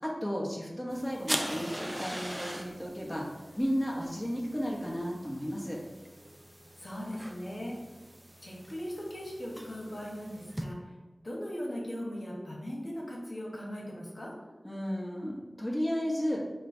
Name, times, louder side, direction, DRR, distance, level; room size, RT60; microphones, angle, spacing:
voice 1, 0.0-3.2 3.6-5.8 14.6-16.4, equal, 5° left, -4 dB, 1.0 m, -33 dB
sound 1, 0.9-10.6, equal, 15° right, 0.4 m, -41 dB
voice 2, 6.8-7.8 8.4-10.8 11.2-14.3, equal, 65° left, -4 dB, 1.0 m, -39 dB
4.4 x 2.2 x 4.3 m, 1.2 s
wide cardioid pair, 50°, 0 cm